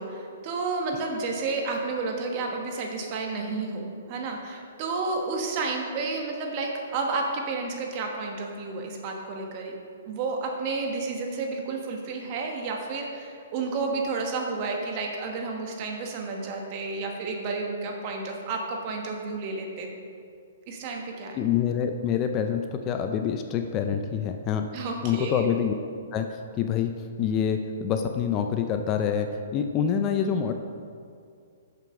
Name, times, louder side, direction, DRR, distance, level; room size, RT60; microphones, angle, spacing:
voice 1, 0.0-9.7 10.1-19.9 20.7-21.4 24.7-25.5, right 3 dB, 40° right, 1 dB, 1.3 m, -31 dB
voice 2, 21.4-24.7 25.0-25.7 26.1-30.5, left 8 dB, 30° left, 6 dB, 0.4 m, -26 dB
6.6 x 6.5 x 5.1 m, 2.3 s
hypercardioid pair, 140°, 0 cm